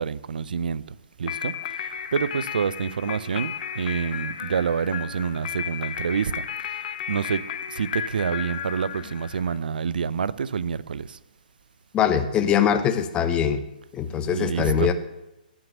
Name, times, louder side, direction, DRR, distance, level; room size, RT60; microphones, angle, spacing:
voice 1, 0.0-11.2 14.3-14.9, right 6 dB, 65° right, 19 dB, 0.6 m, -28 dB
sound 1, 1.2-9.6, left 8 dB, 50° left, 0.9 m, -34 dB
voice 2, 11.9-13.6 13.9-14.9, left 8 dB, 20° left, 9 dB, 1.0 m, -22 dB
18.5 x 6.3 x 6.6 m, 0.93 s
figure-of-eight pair, 130°, 5 cm